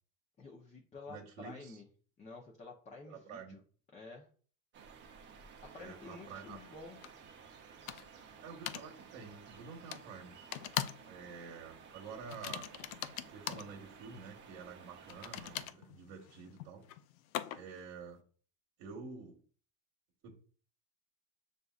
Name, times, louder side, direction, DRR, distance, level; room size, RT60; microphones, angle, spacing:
voice 1, 0.4-1.9 2.2-3.6 3.9-4.3 5.6-7.2, left 3 dB, 15° left, 0 dB, 0.6 m, -51 dB
voice 2, 1.1-1.8 3.1-3.6 5.7-6.6 8.4-10.3 11.1-12.7 13.3-16.9 17.5-18.2 18.8-19.4 20.2-20.4, right 5 dB, 60° right, 1 dB, 1.2 m, -49 dB
sound 1, 4.7-15.7, right 6 dB, 30° right, 0.7 m, -55 dB
sound 2, 7.0-7.1 7.9-8.2 8.7-8.9 9.9-10.0 10.5-11.1 11.4-11.6 12.3-13.7 15.1-17.8, left 12 dB, 90° left, 0.5 m, -41 dB
6.7 x 2.6 x 2.4 m, 0.43 s
supercardioid pair, 130°, 40 cm